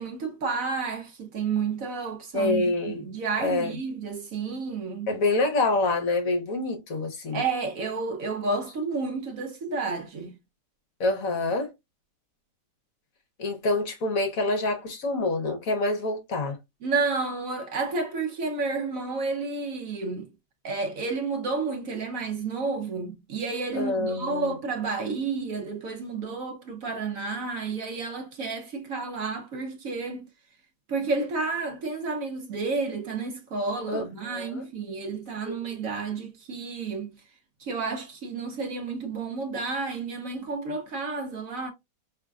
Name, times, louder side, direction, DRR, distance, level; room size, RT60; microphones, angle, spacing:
voice 1, 0.0-5.1 7.3-10.3 16.8-20.3 20.6-30.3 30.9-37.1 37.6-41.7, right 4 dB, 60° right, 1.1 m, -31 dB
voice 2, 2.3-3.0 3.4-3.8 5.1-7.4 11.0-11.7 13.4-16.6 23.7-24.5 33.9-34.6 35.4-35.6, left 2 dB, 60° left, 1.1 m, -26 dB
5.0 x 3.2 x 2.3 m
omnidirectional pair, 1.8 m